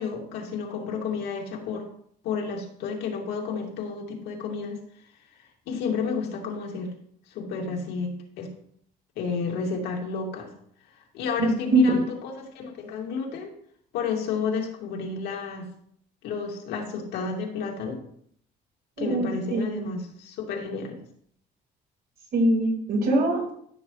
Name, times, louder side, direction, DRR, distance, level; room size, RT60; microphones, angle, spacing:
voice 1, 0.0-1.9 2.2-4.8 5.7-6.9 7.3-8.5 9.2-10.5 11.1-13.5 13.9-15.7 16.2-18.0 19.0-21.0, left 5 dB, 85° left, 1 dB, 2.4 m, -31 dB
voice 2, 11.4-12.0 19.0-19.9 22.3-23.4, right 1 dB, 65° right, -1 dB, 4.7 m, -22 dB
14.5 x 6.8 x 3.2 m, 0.66 s
cardioid pair, 110°, 17 cm